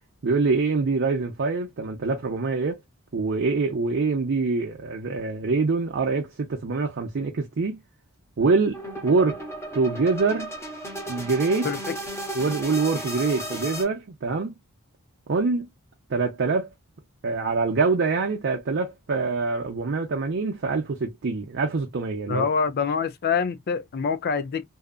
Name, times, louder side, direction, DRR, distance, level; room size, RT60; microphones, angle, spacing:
voice 1, 0.2-2.8 3.1-7.8 8.4-9.4 9.7-10.5 11.1-11.7 12.3-14.6 15.3-15.7 16.1-16.7 17.2-22.5, right 4 dB, 55° right, 0.5 m, -25 dB
sound 1, 8.7-13.8, right 1 dB, 10° left, 1.0 m, -34 dB
voice 2, 22.3-24.6, left 6 dB, 45° left, 0.4 m, -25 dB
2.7 x 2.4 x 2.3 m
head